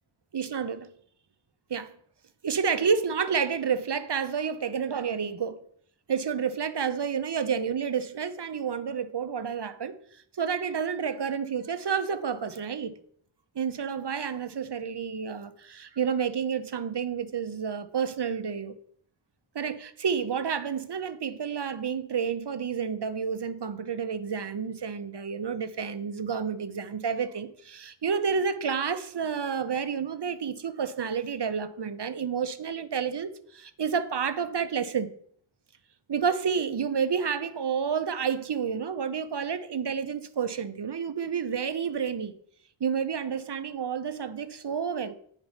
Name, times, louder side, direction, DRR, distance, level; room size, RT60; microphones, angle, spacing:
voice 1, 0.3-0.9 1.7-1.9 2.4-5.6 6.1-10.0 10.3-12.9 13.5-18.7 19.5-35.1 36.1-42.3 42.8-45.1, right 6 dB, 55° right, 0.7 m, -30 dB
9.6 x 4.5 x 5.6 m
wide cardioid pair, 55°, 49 cm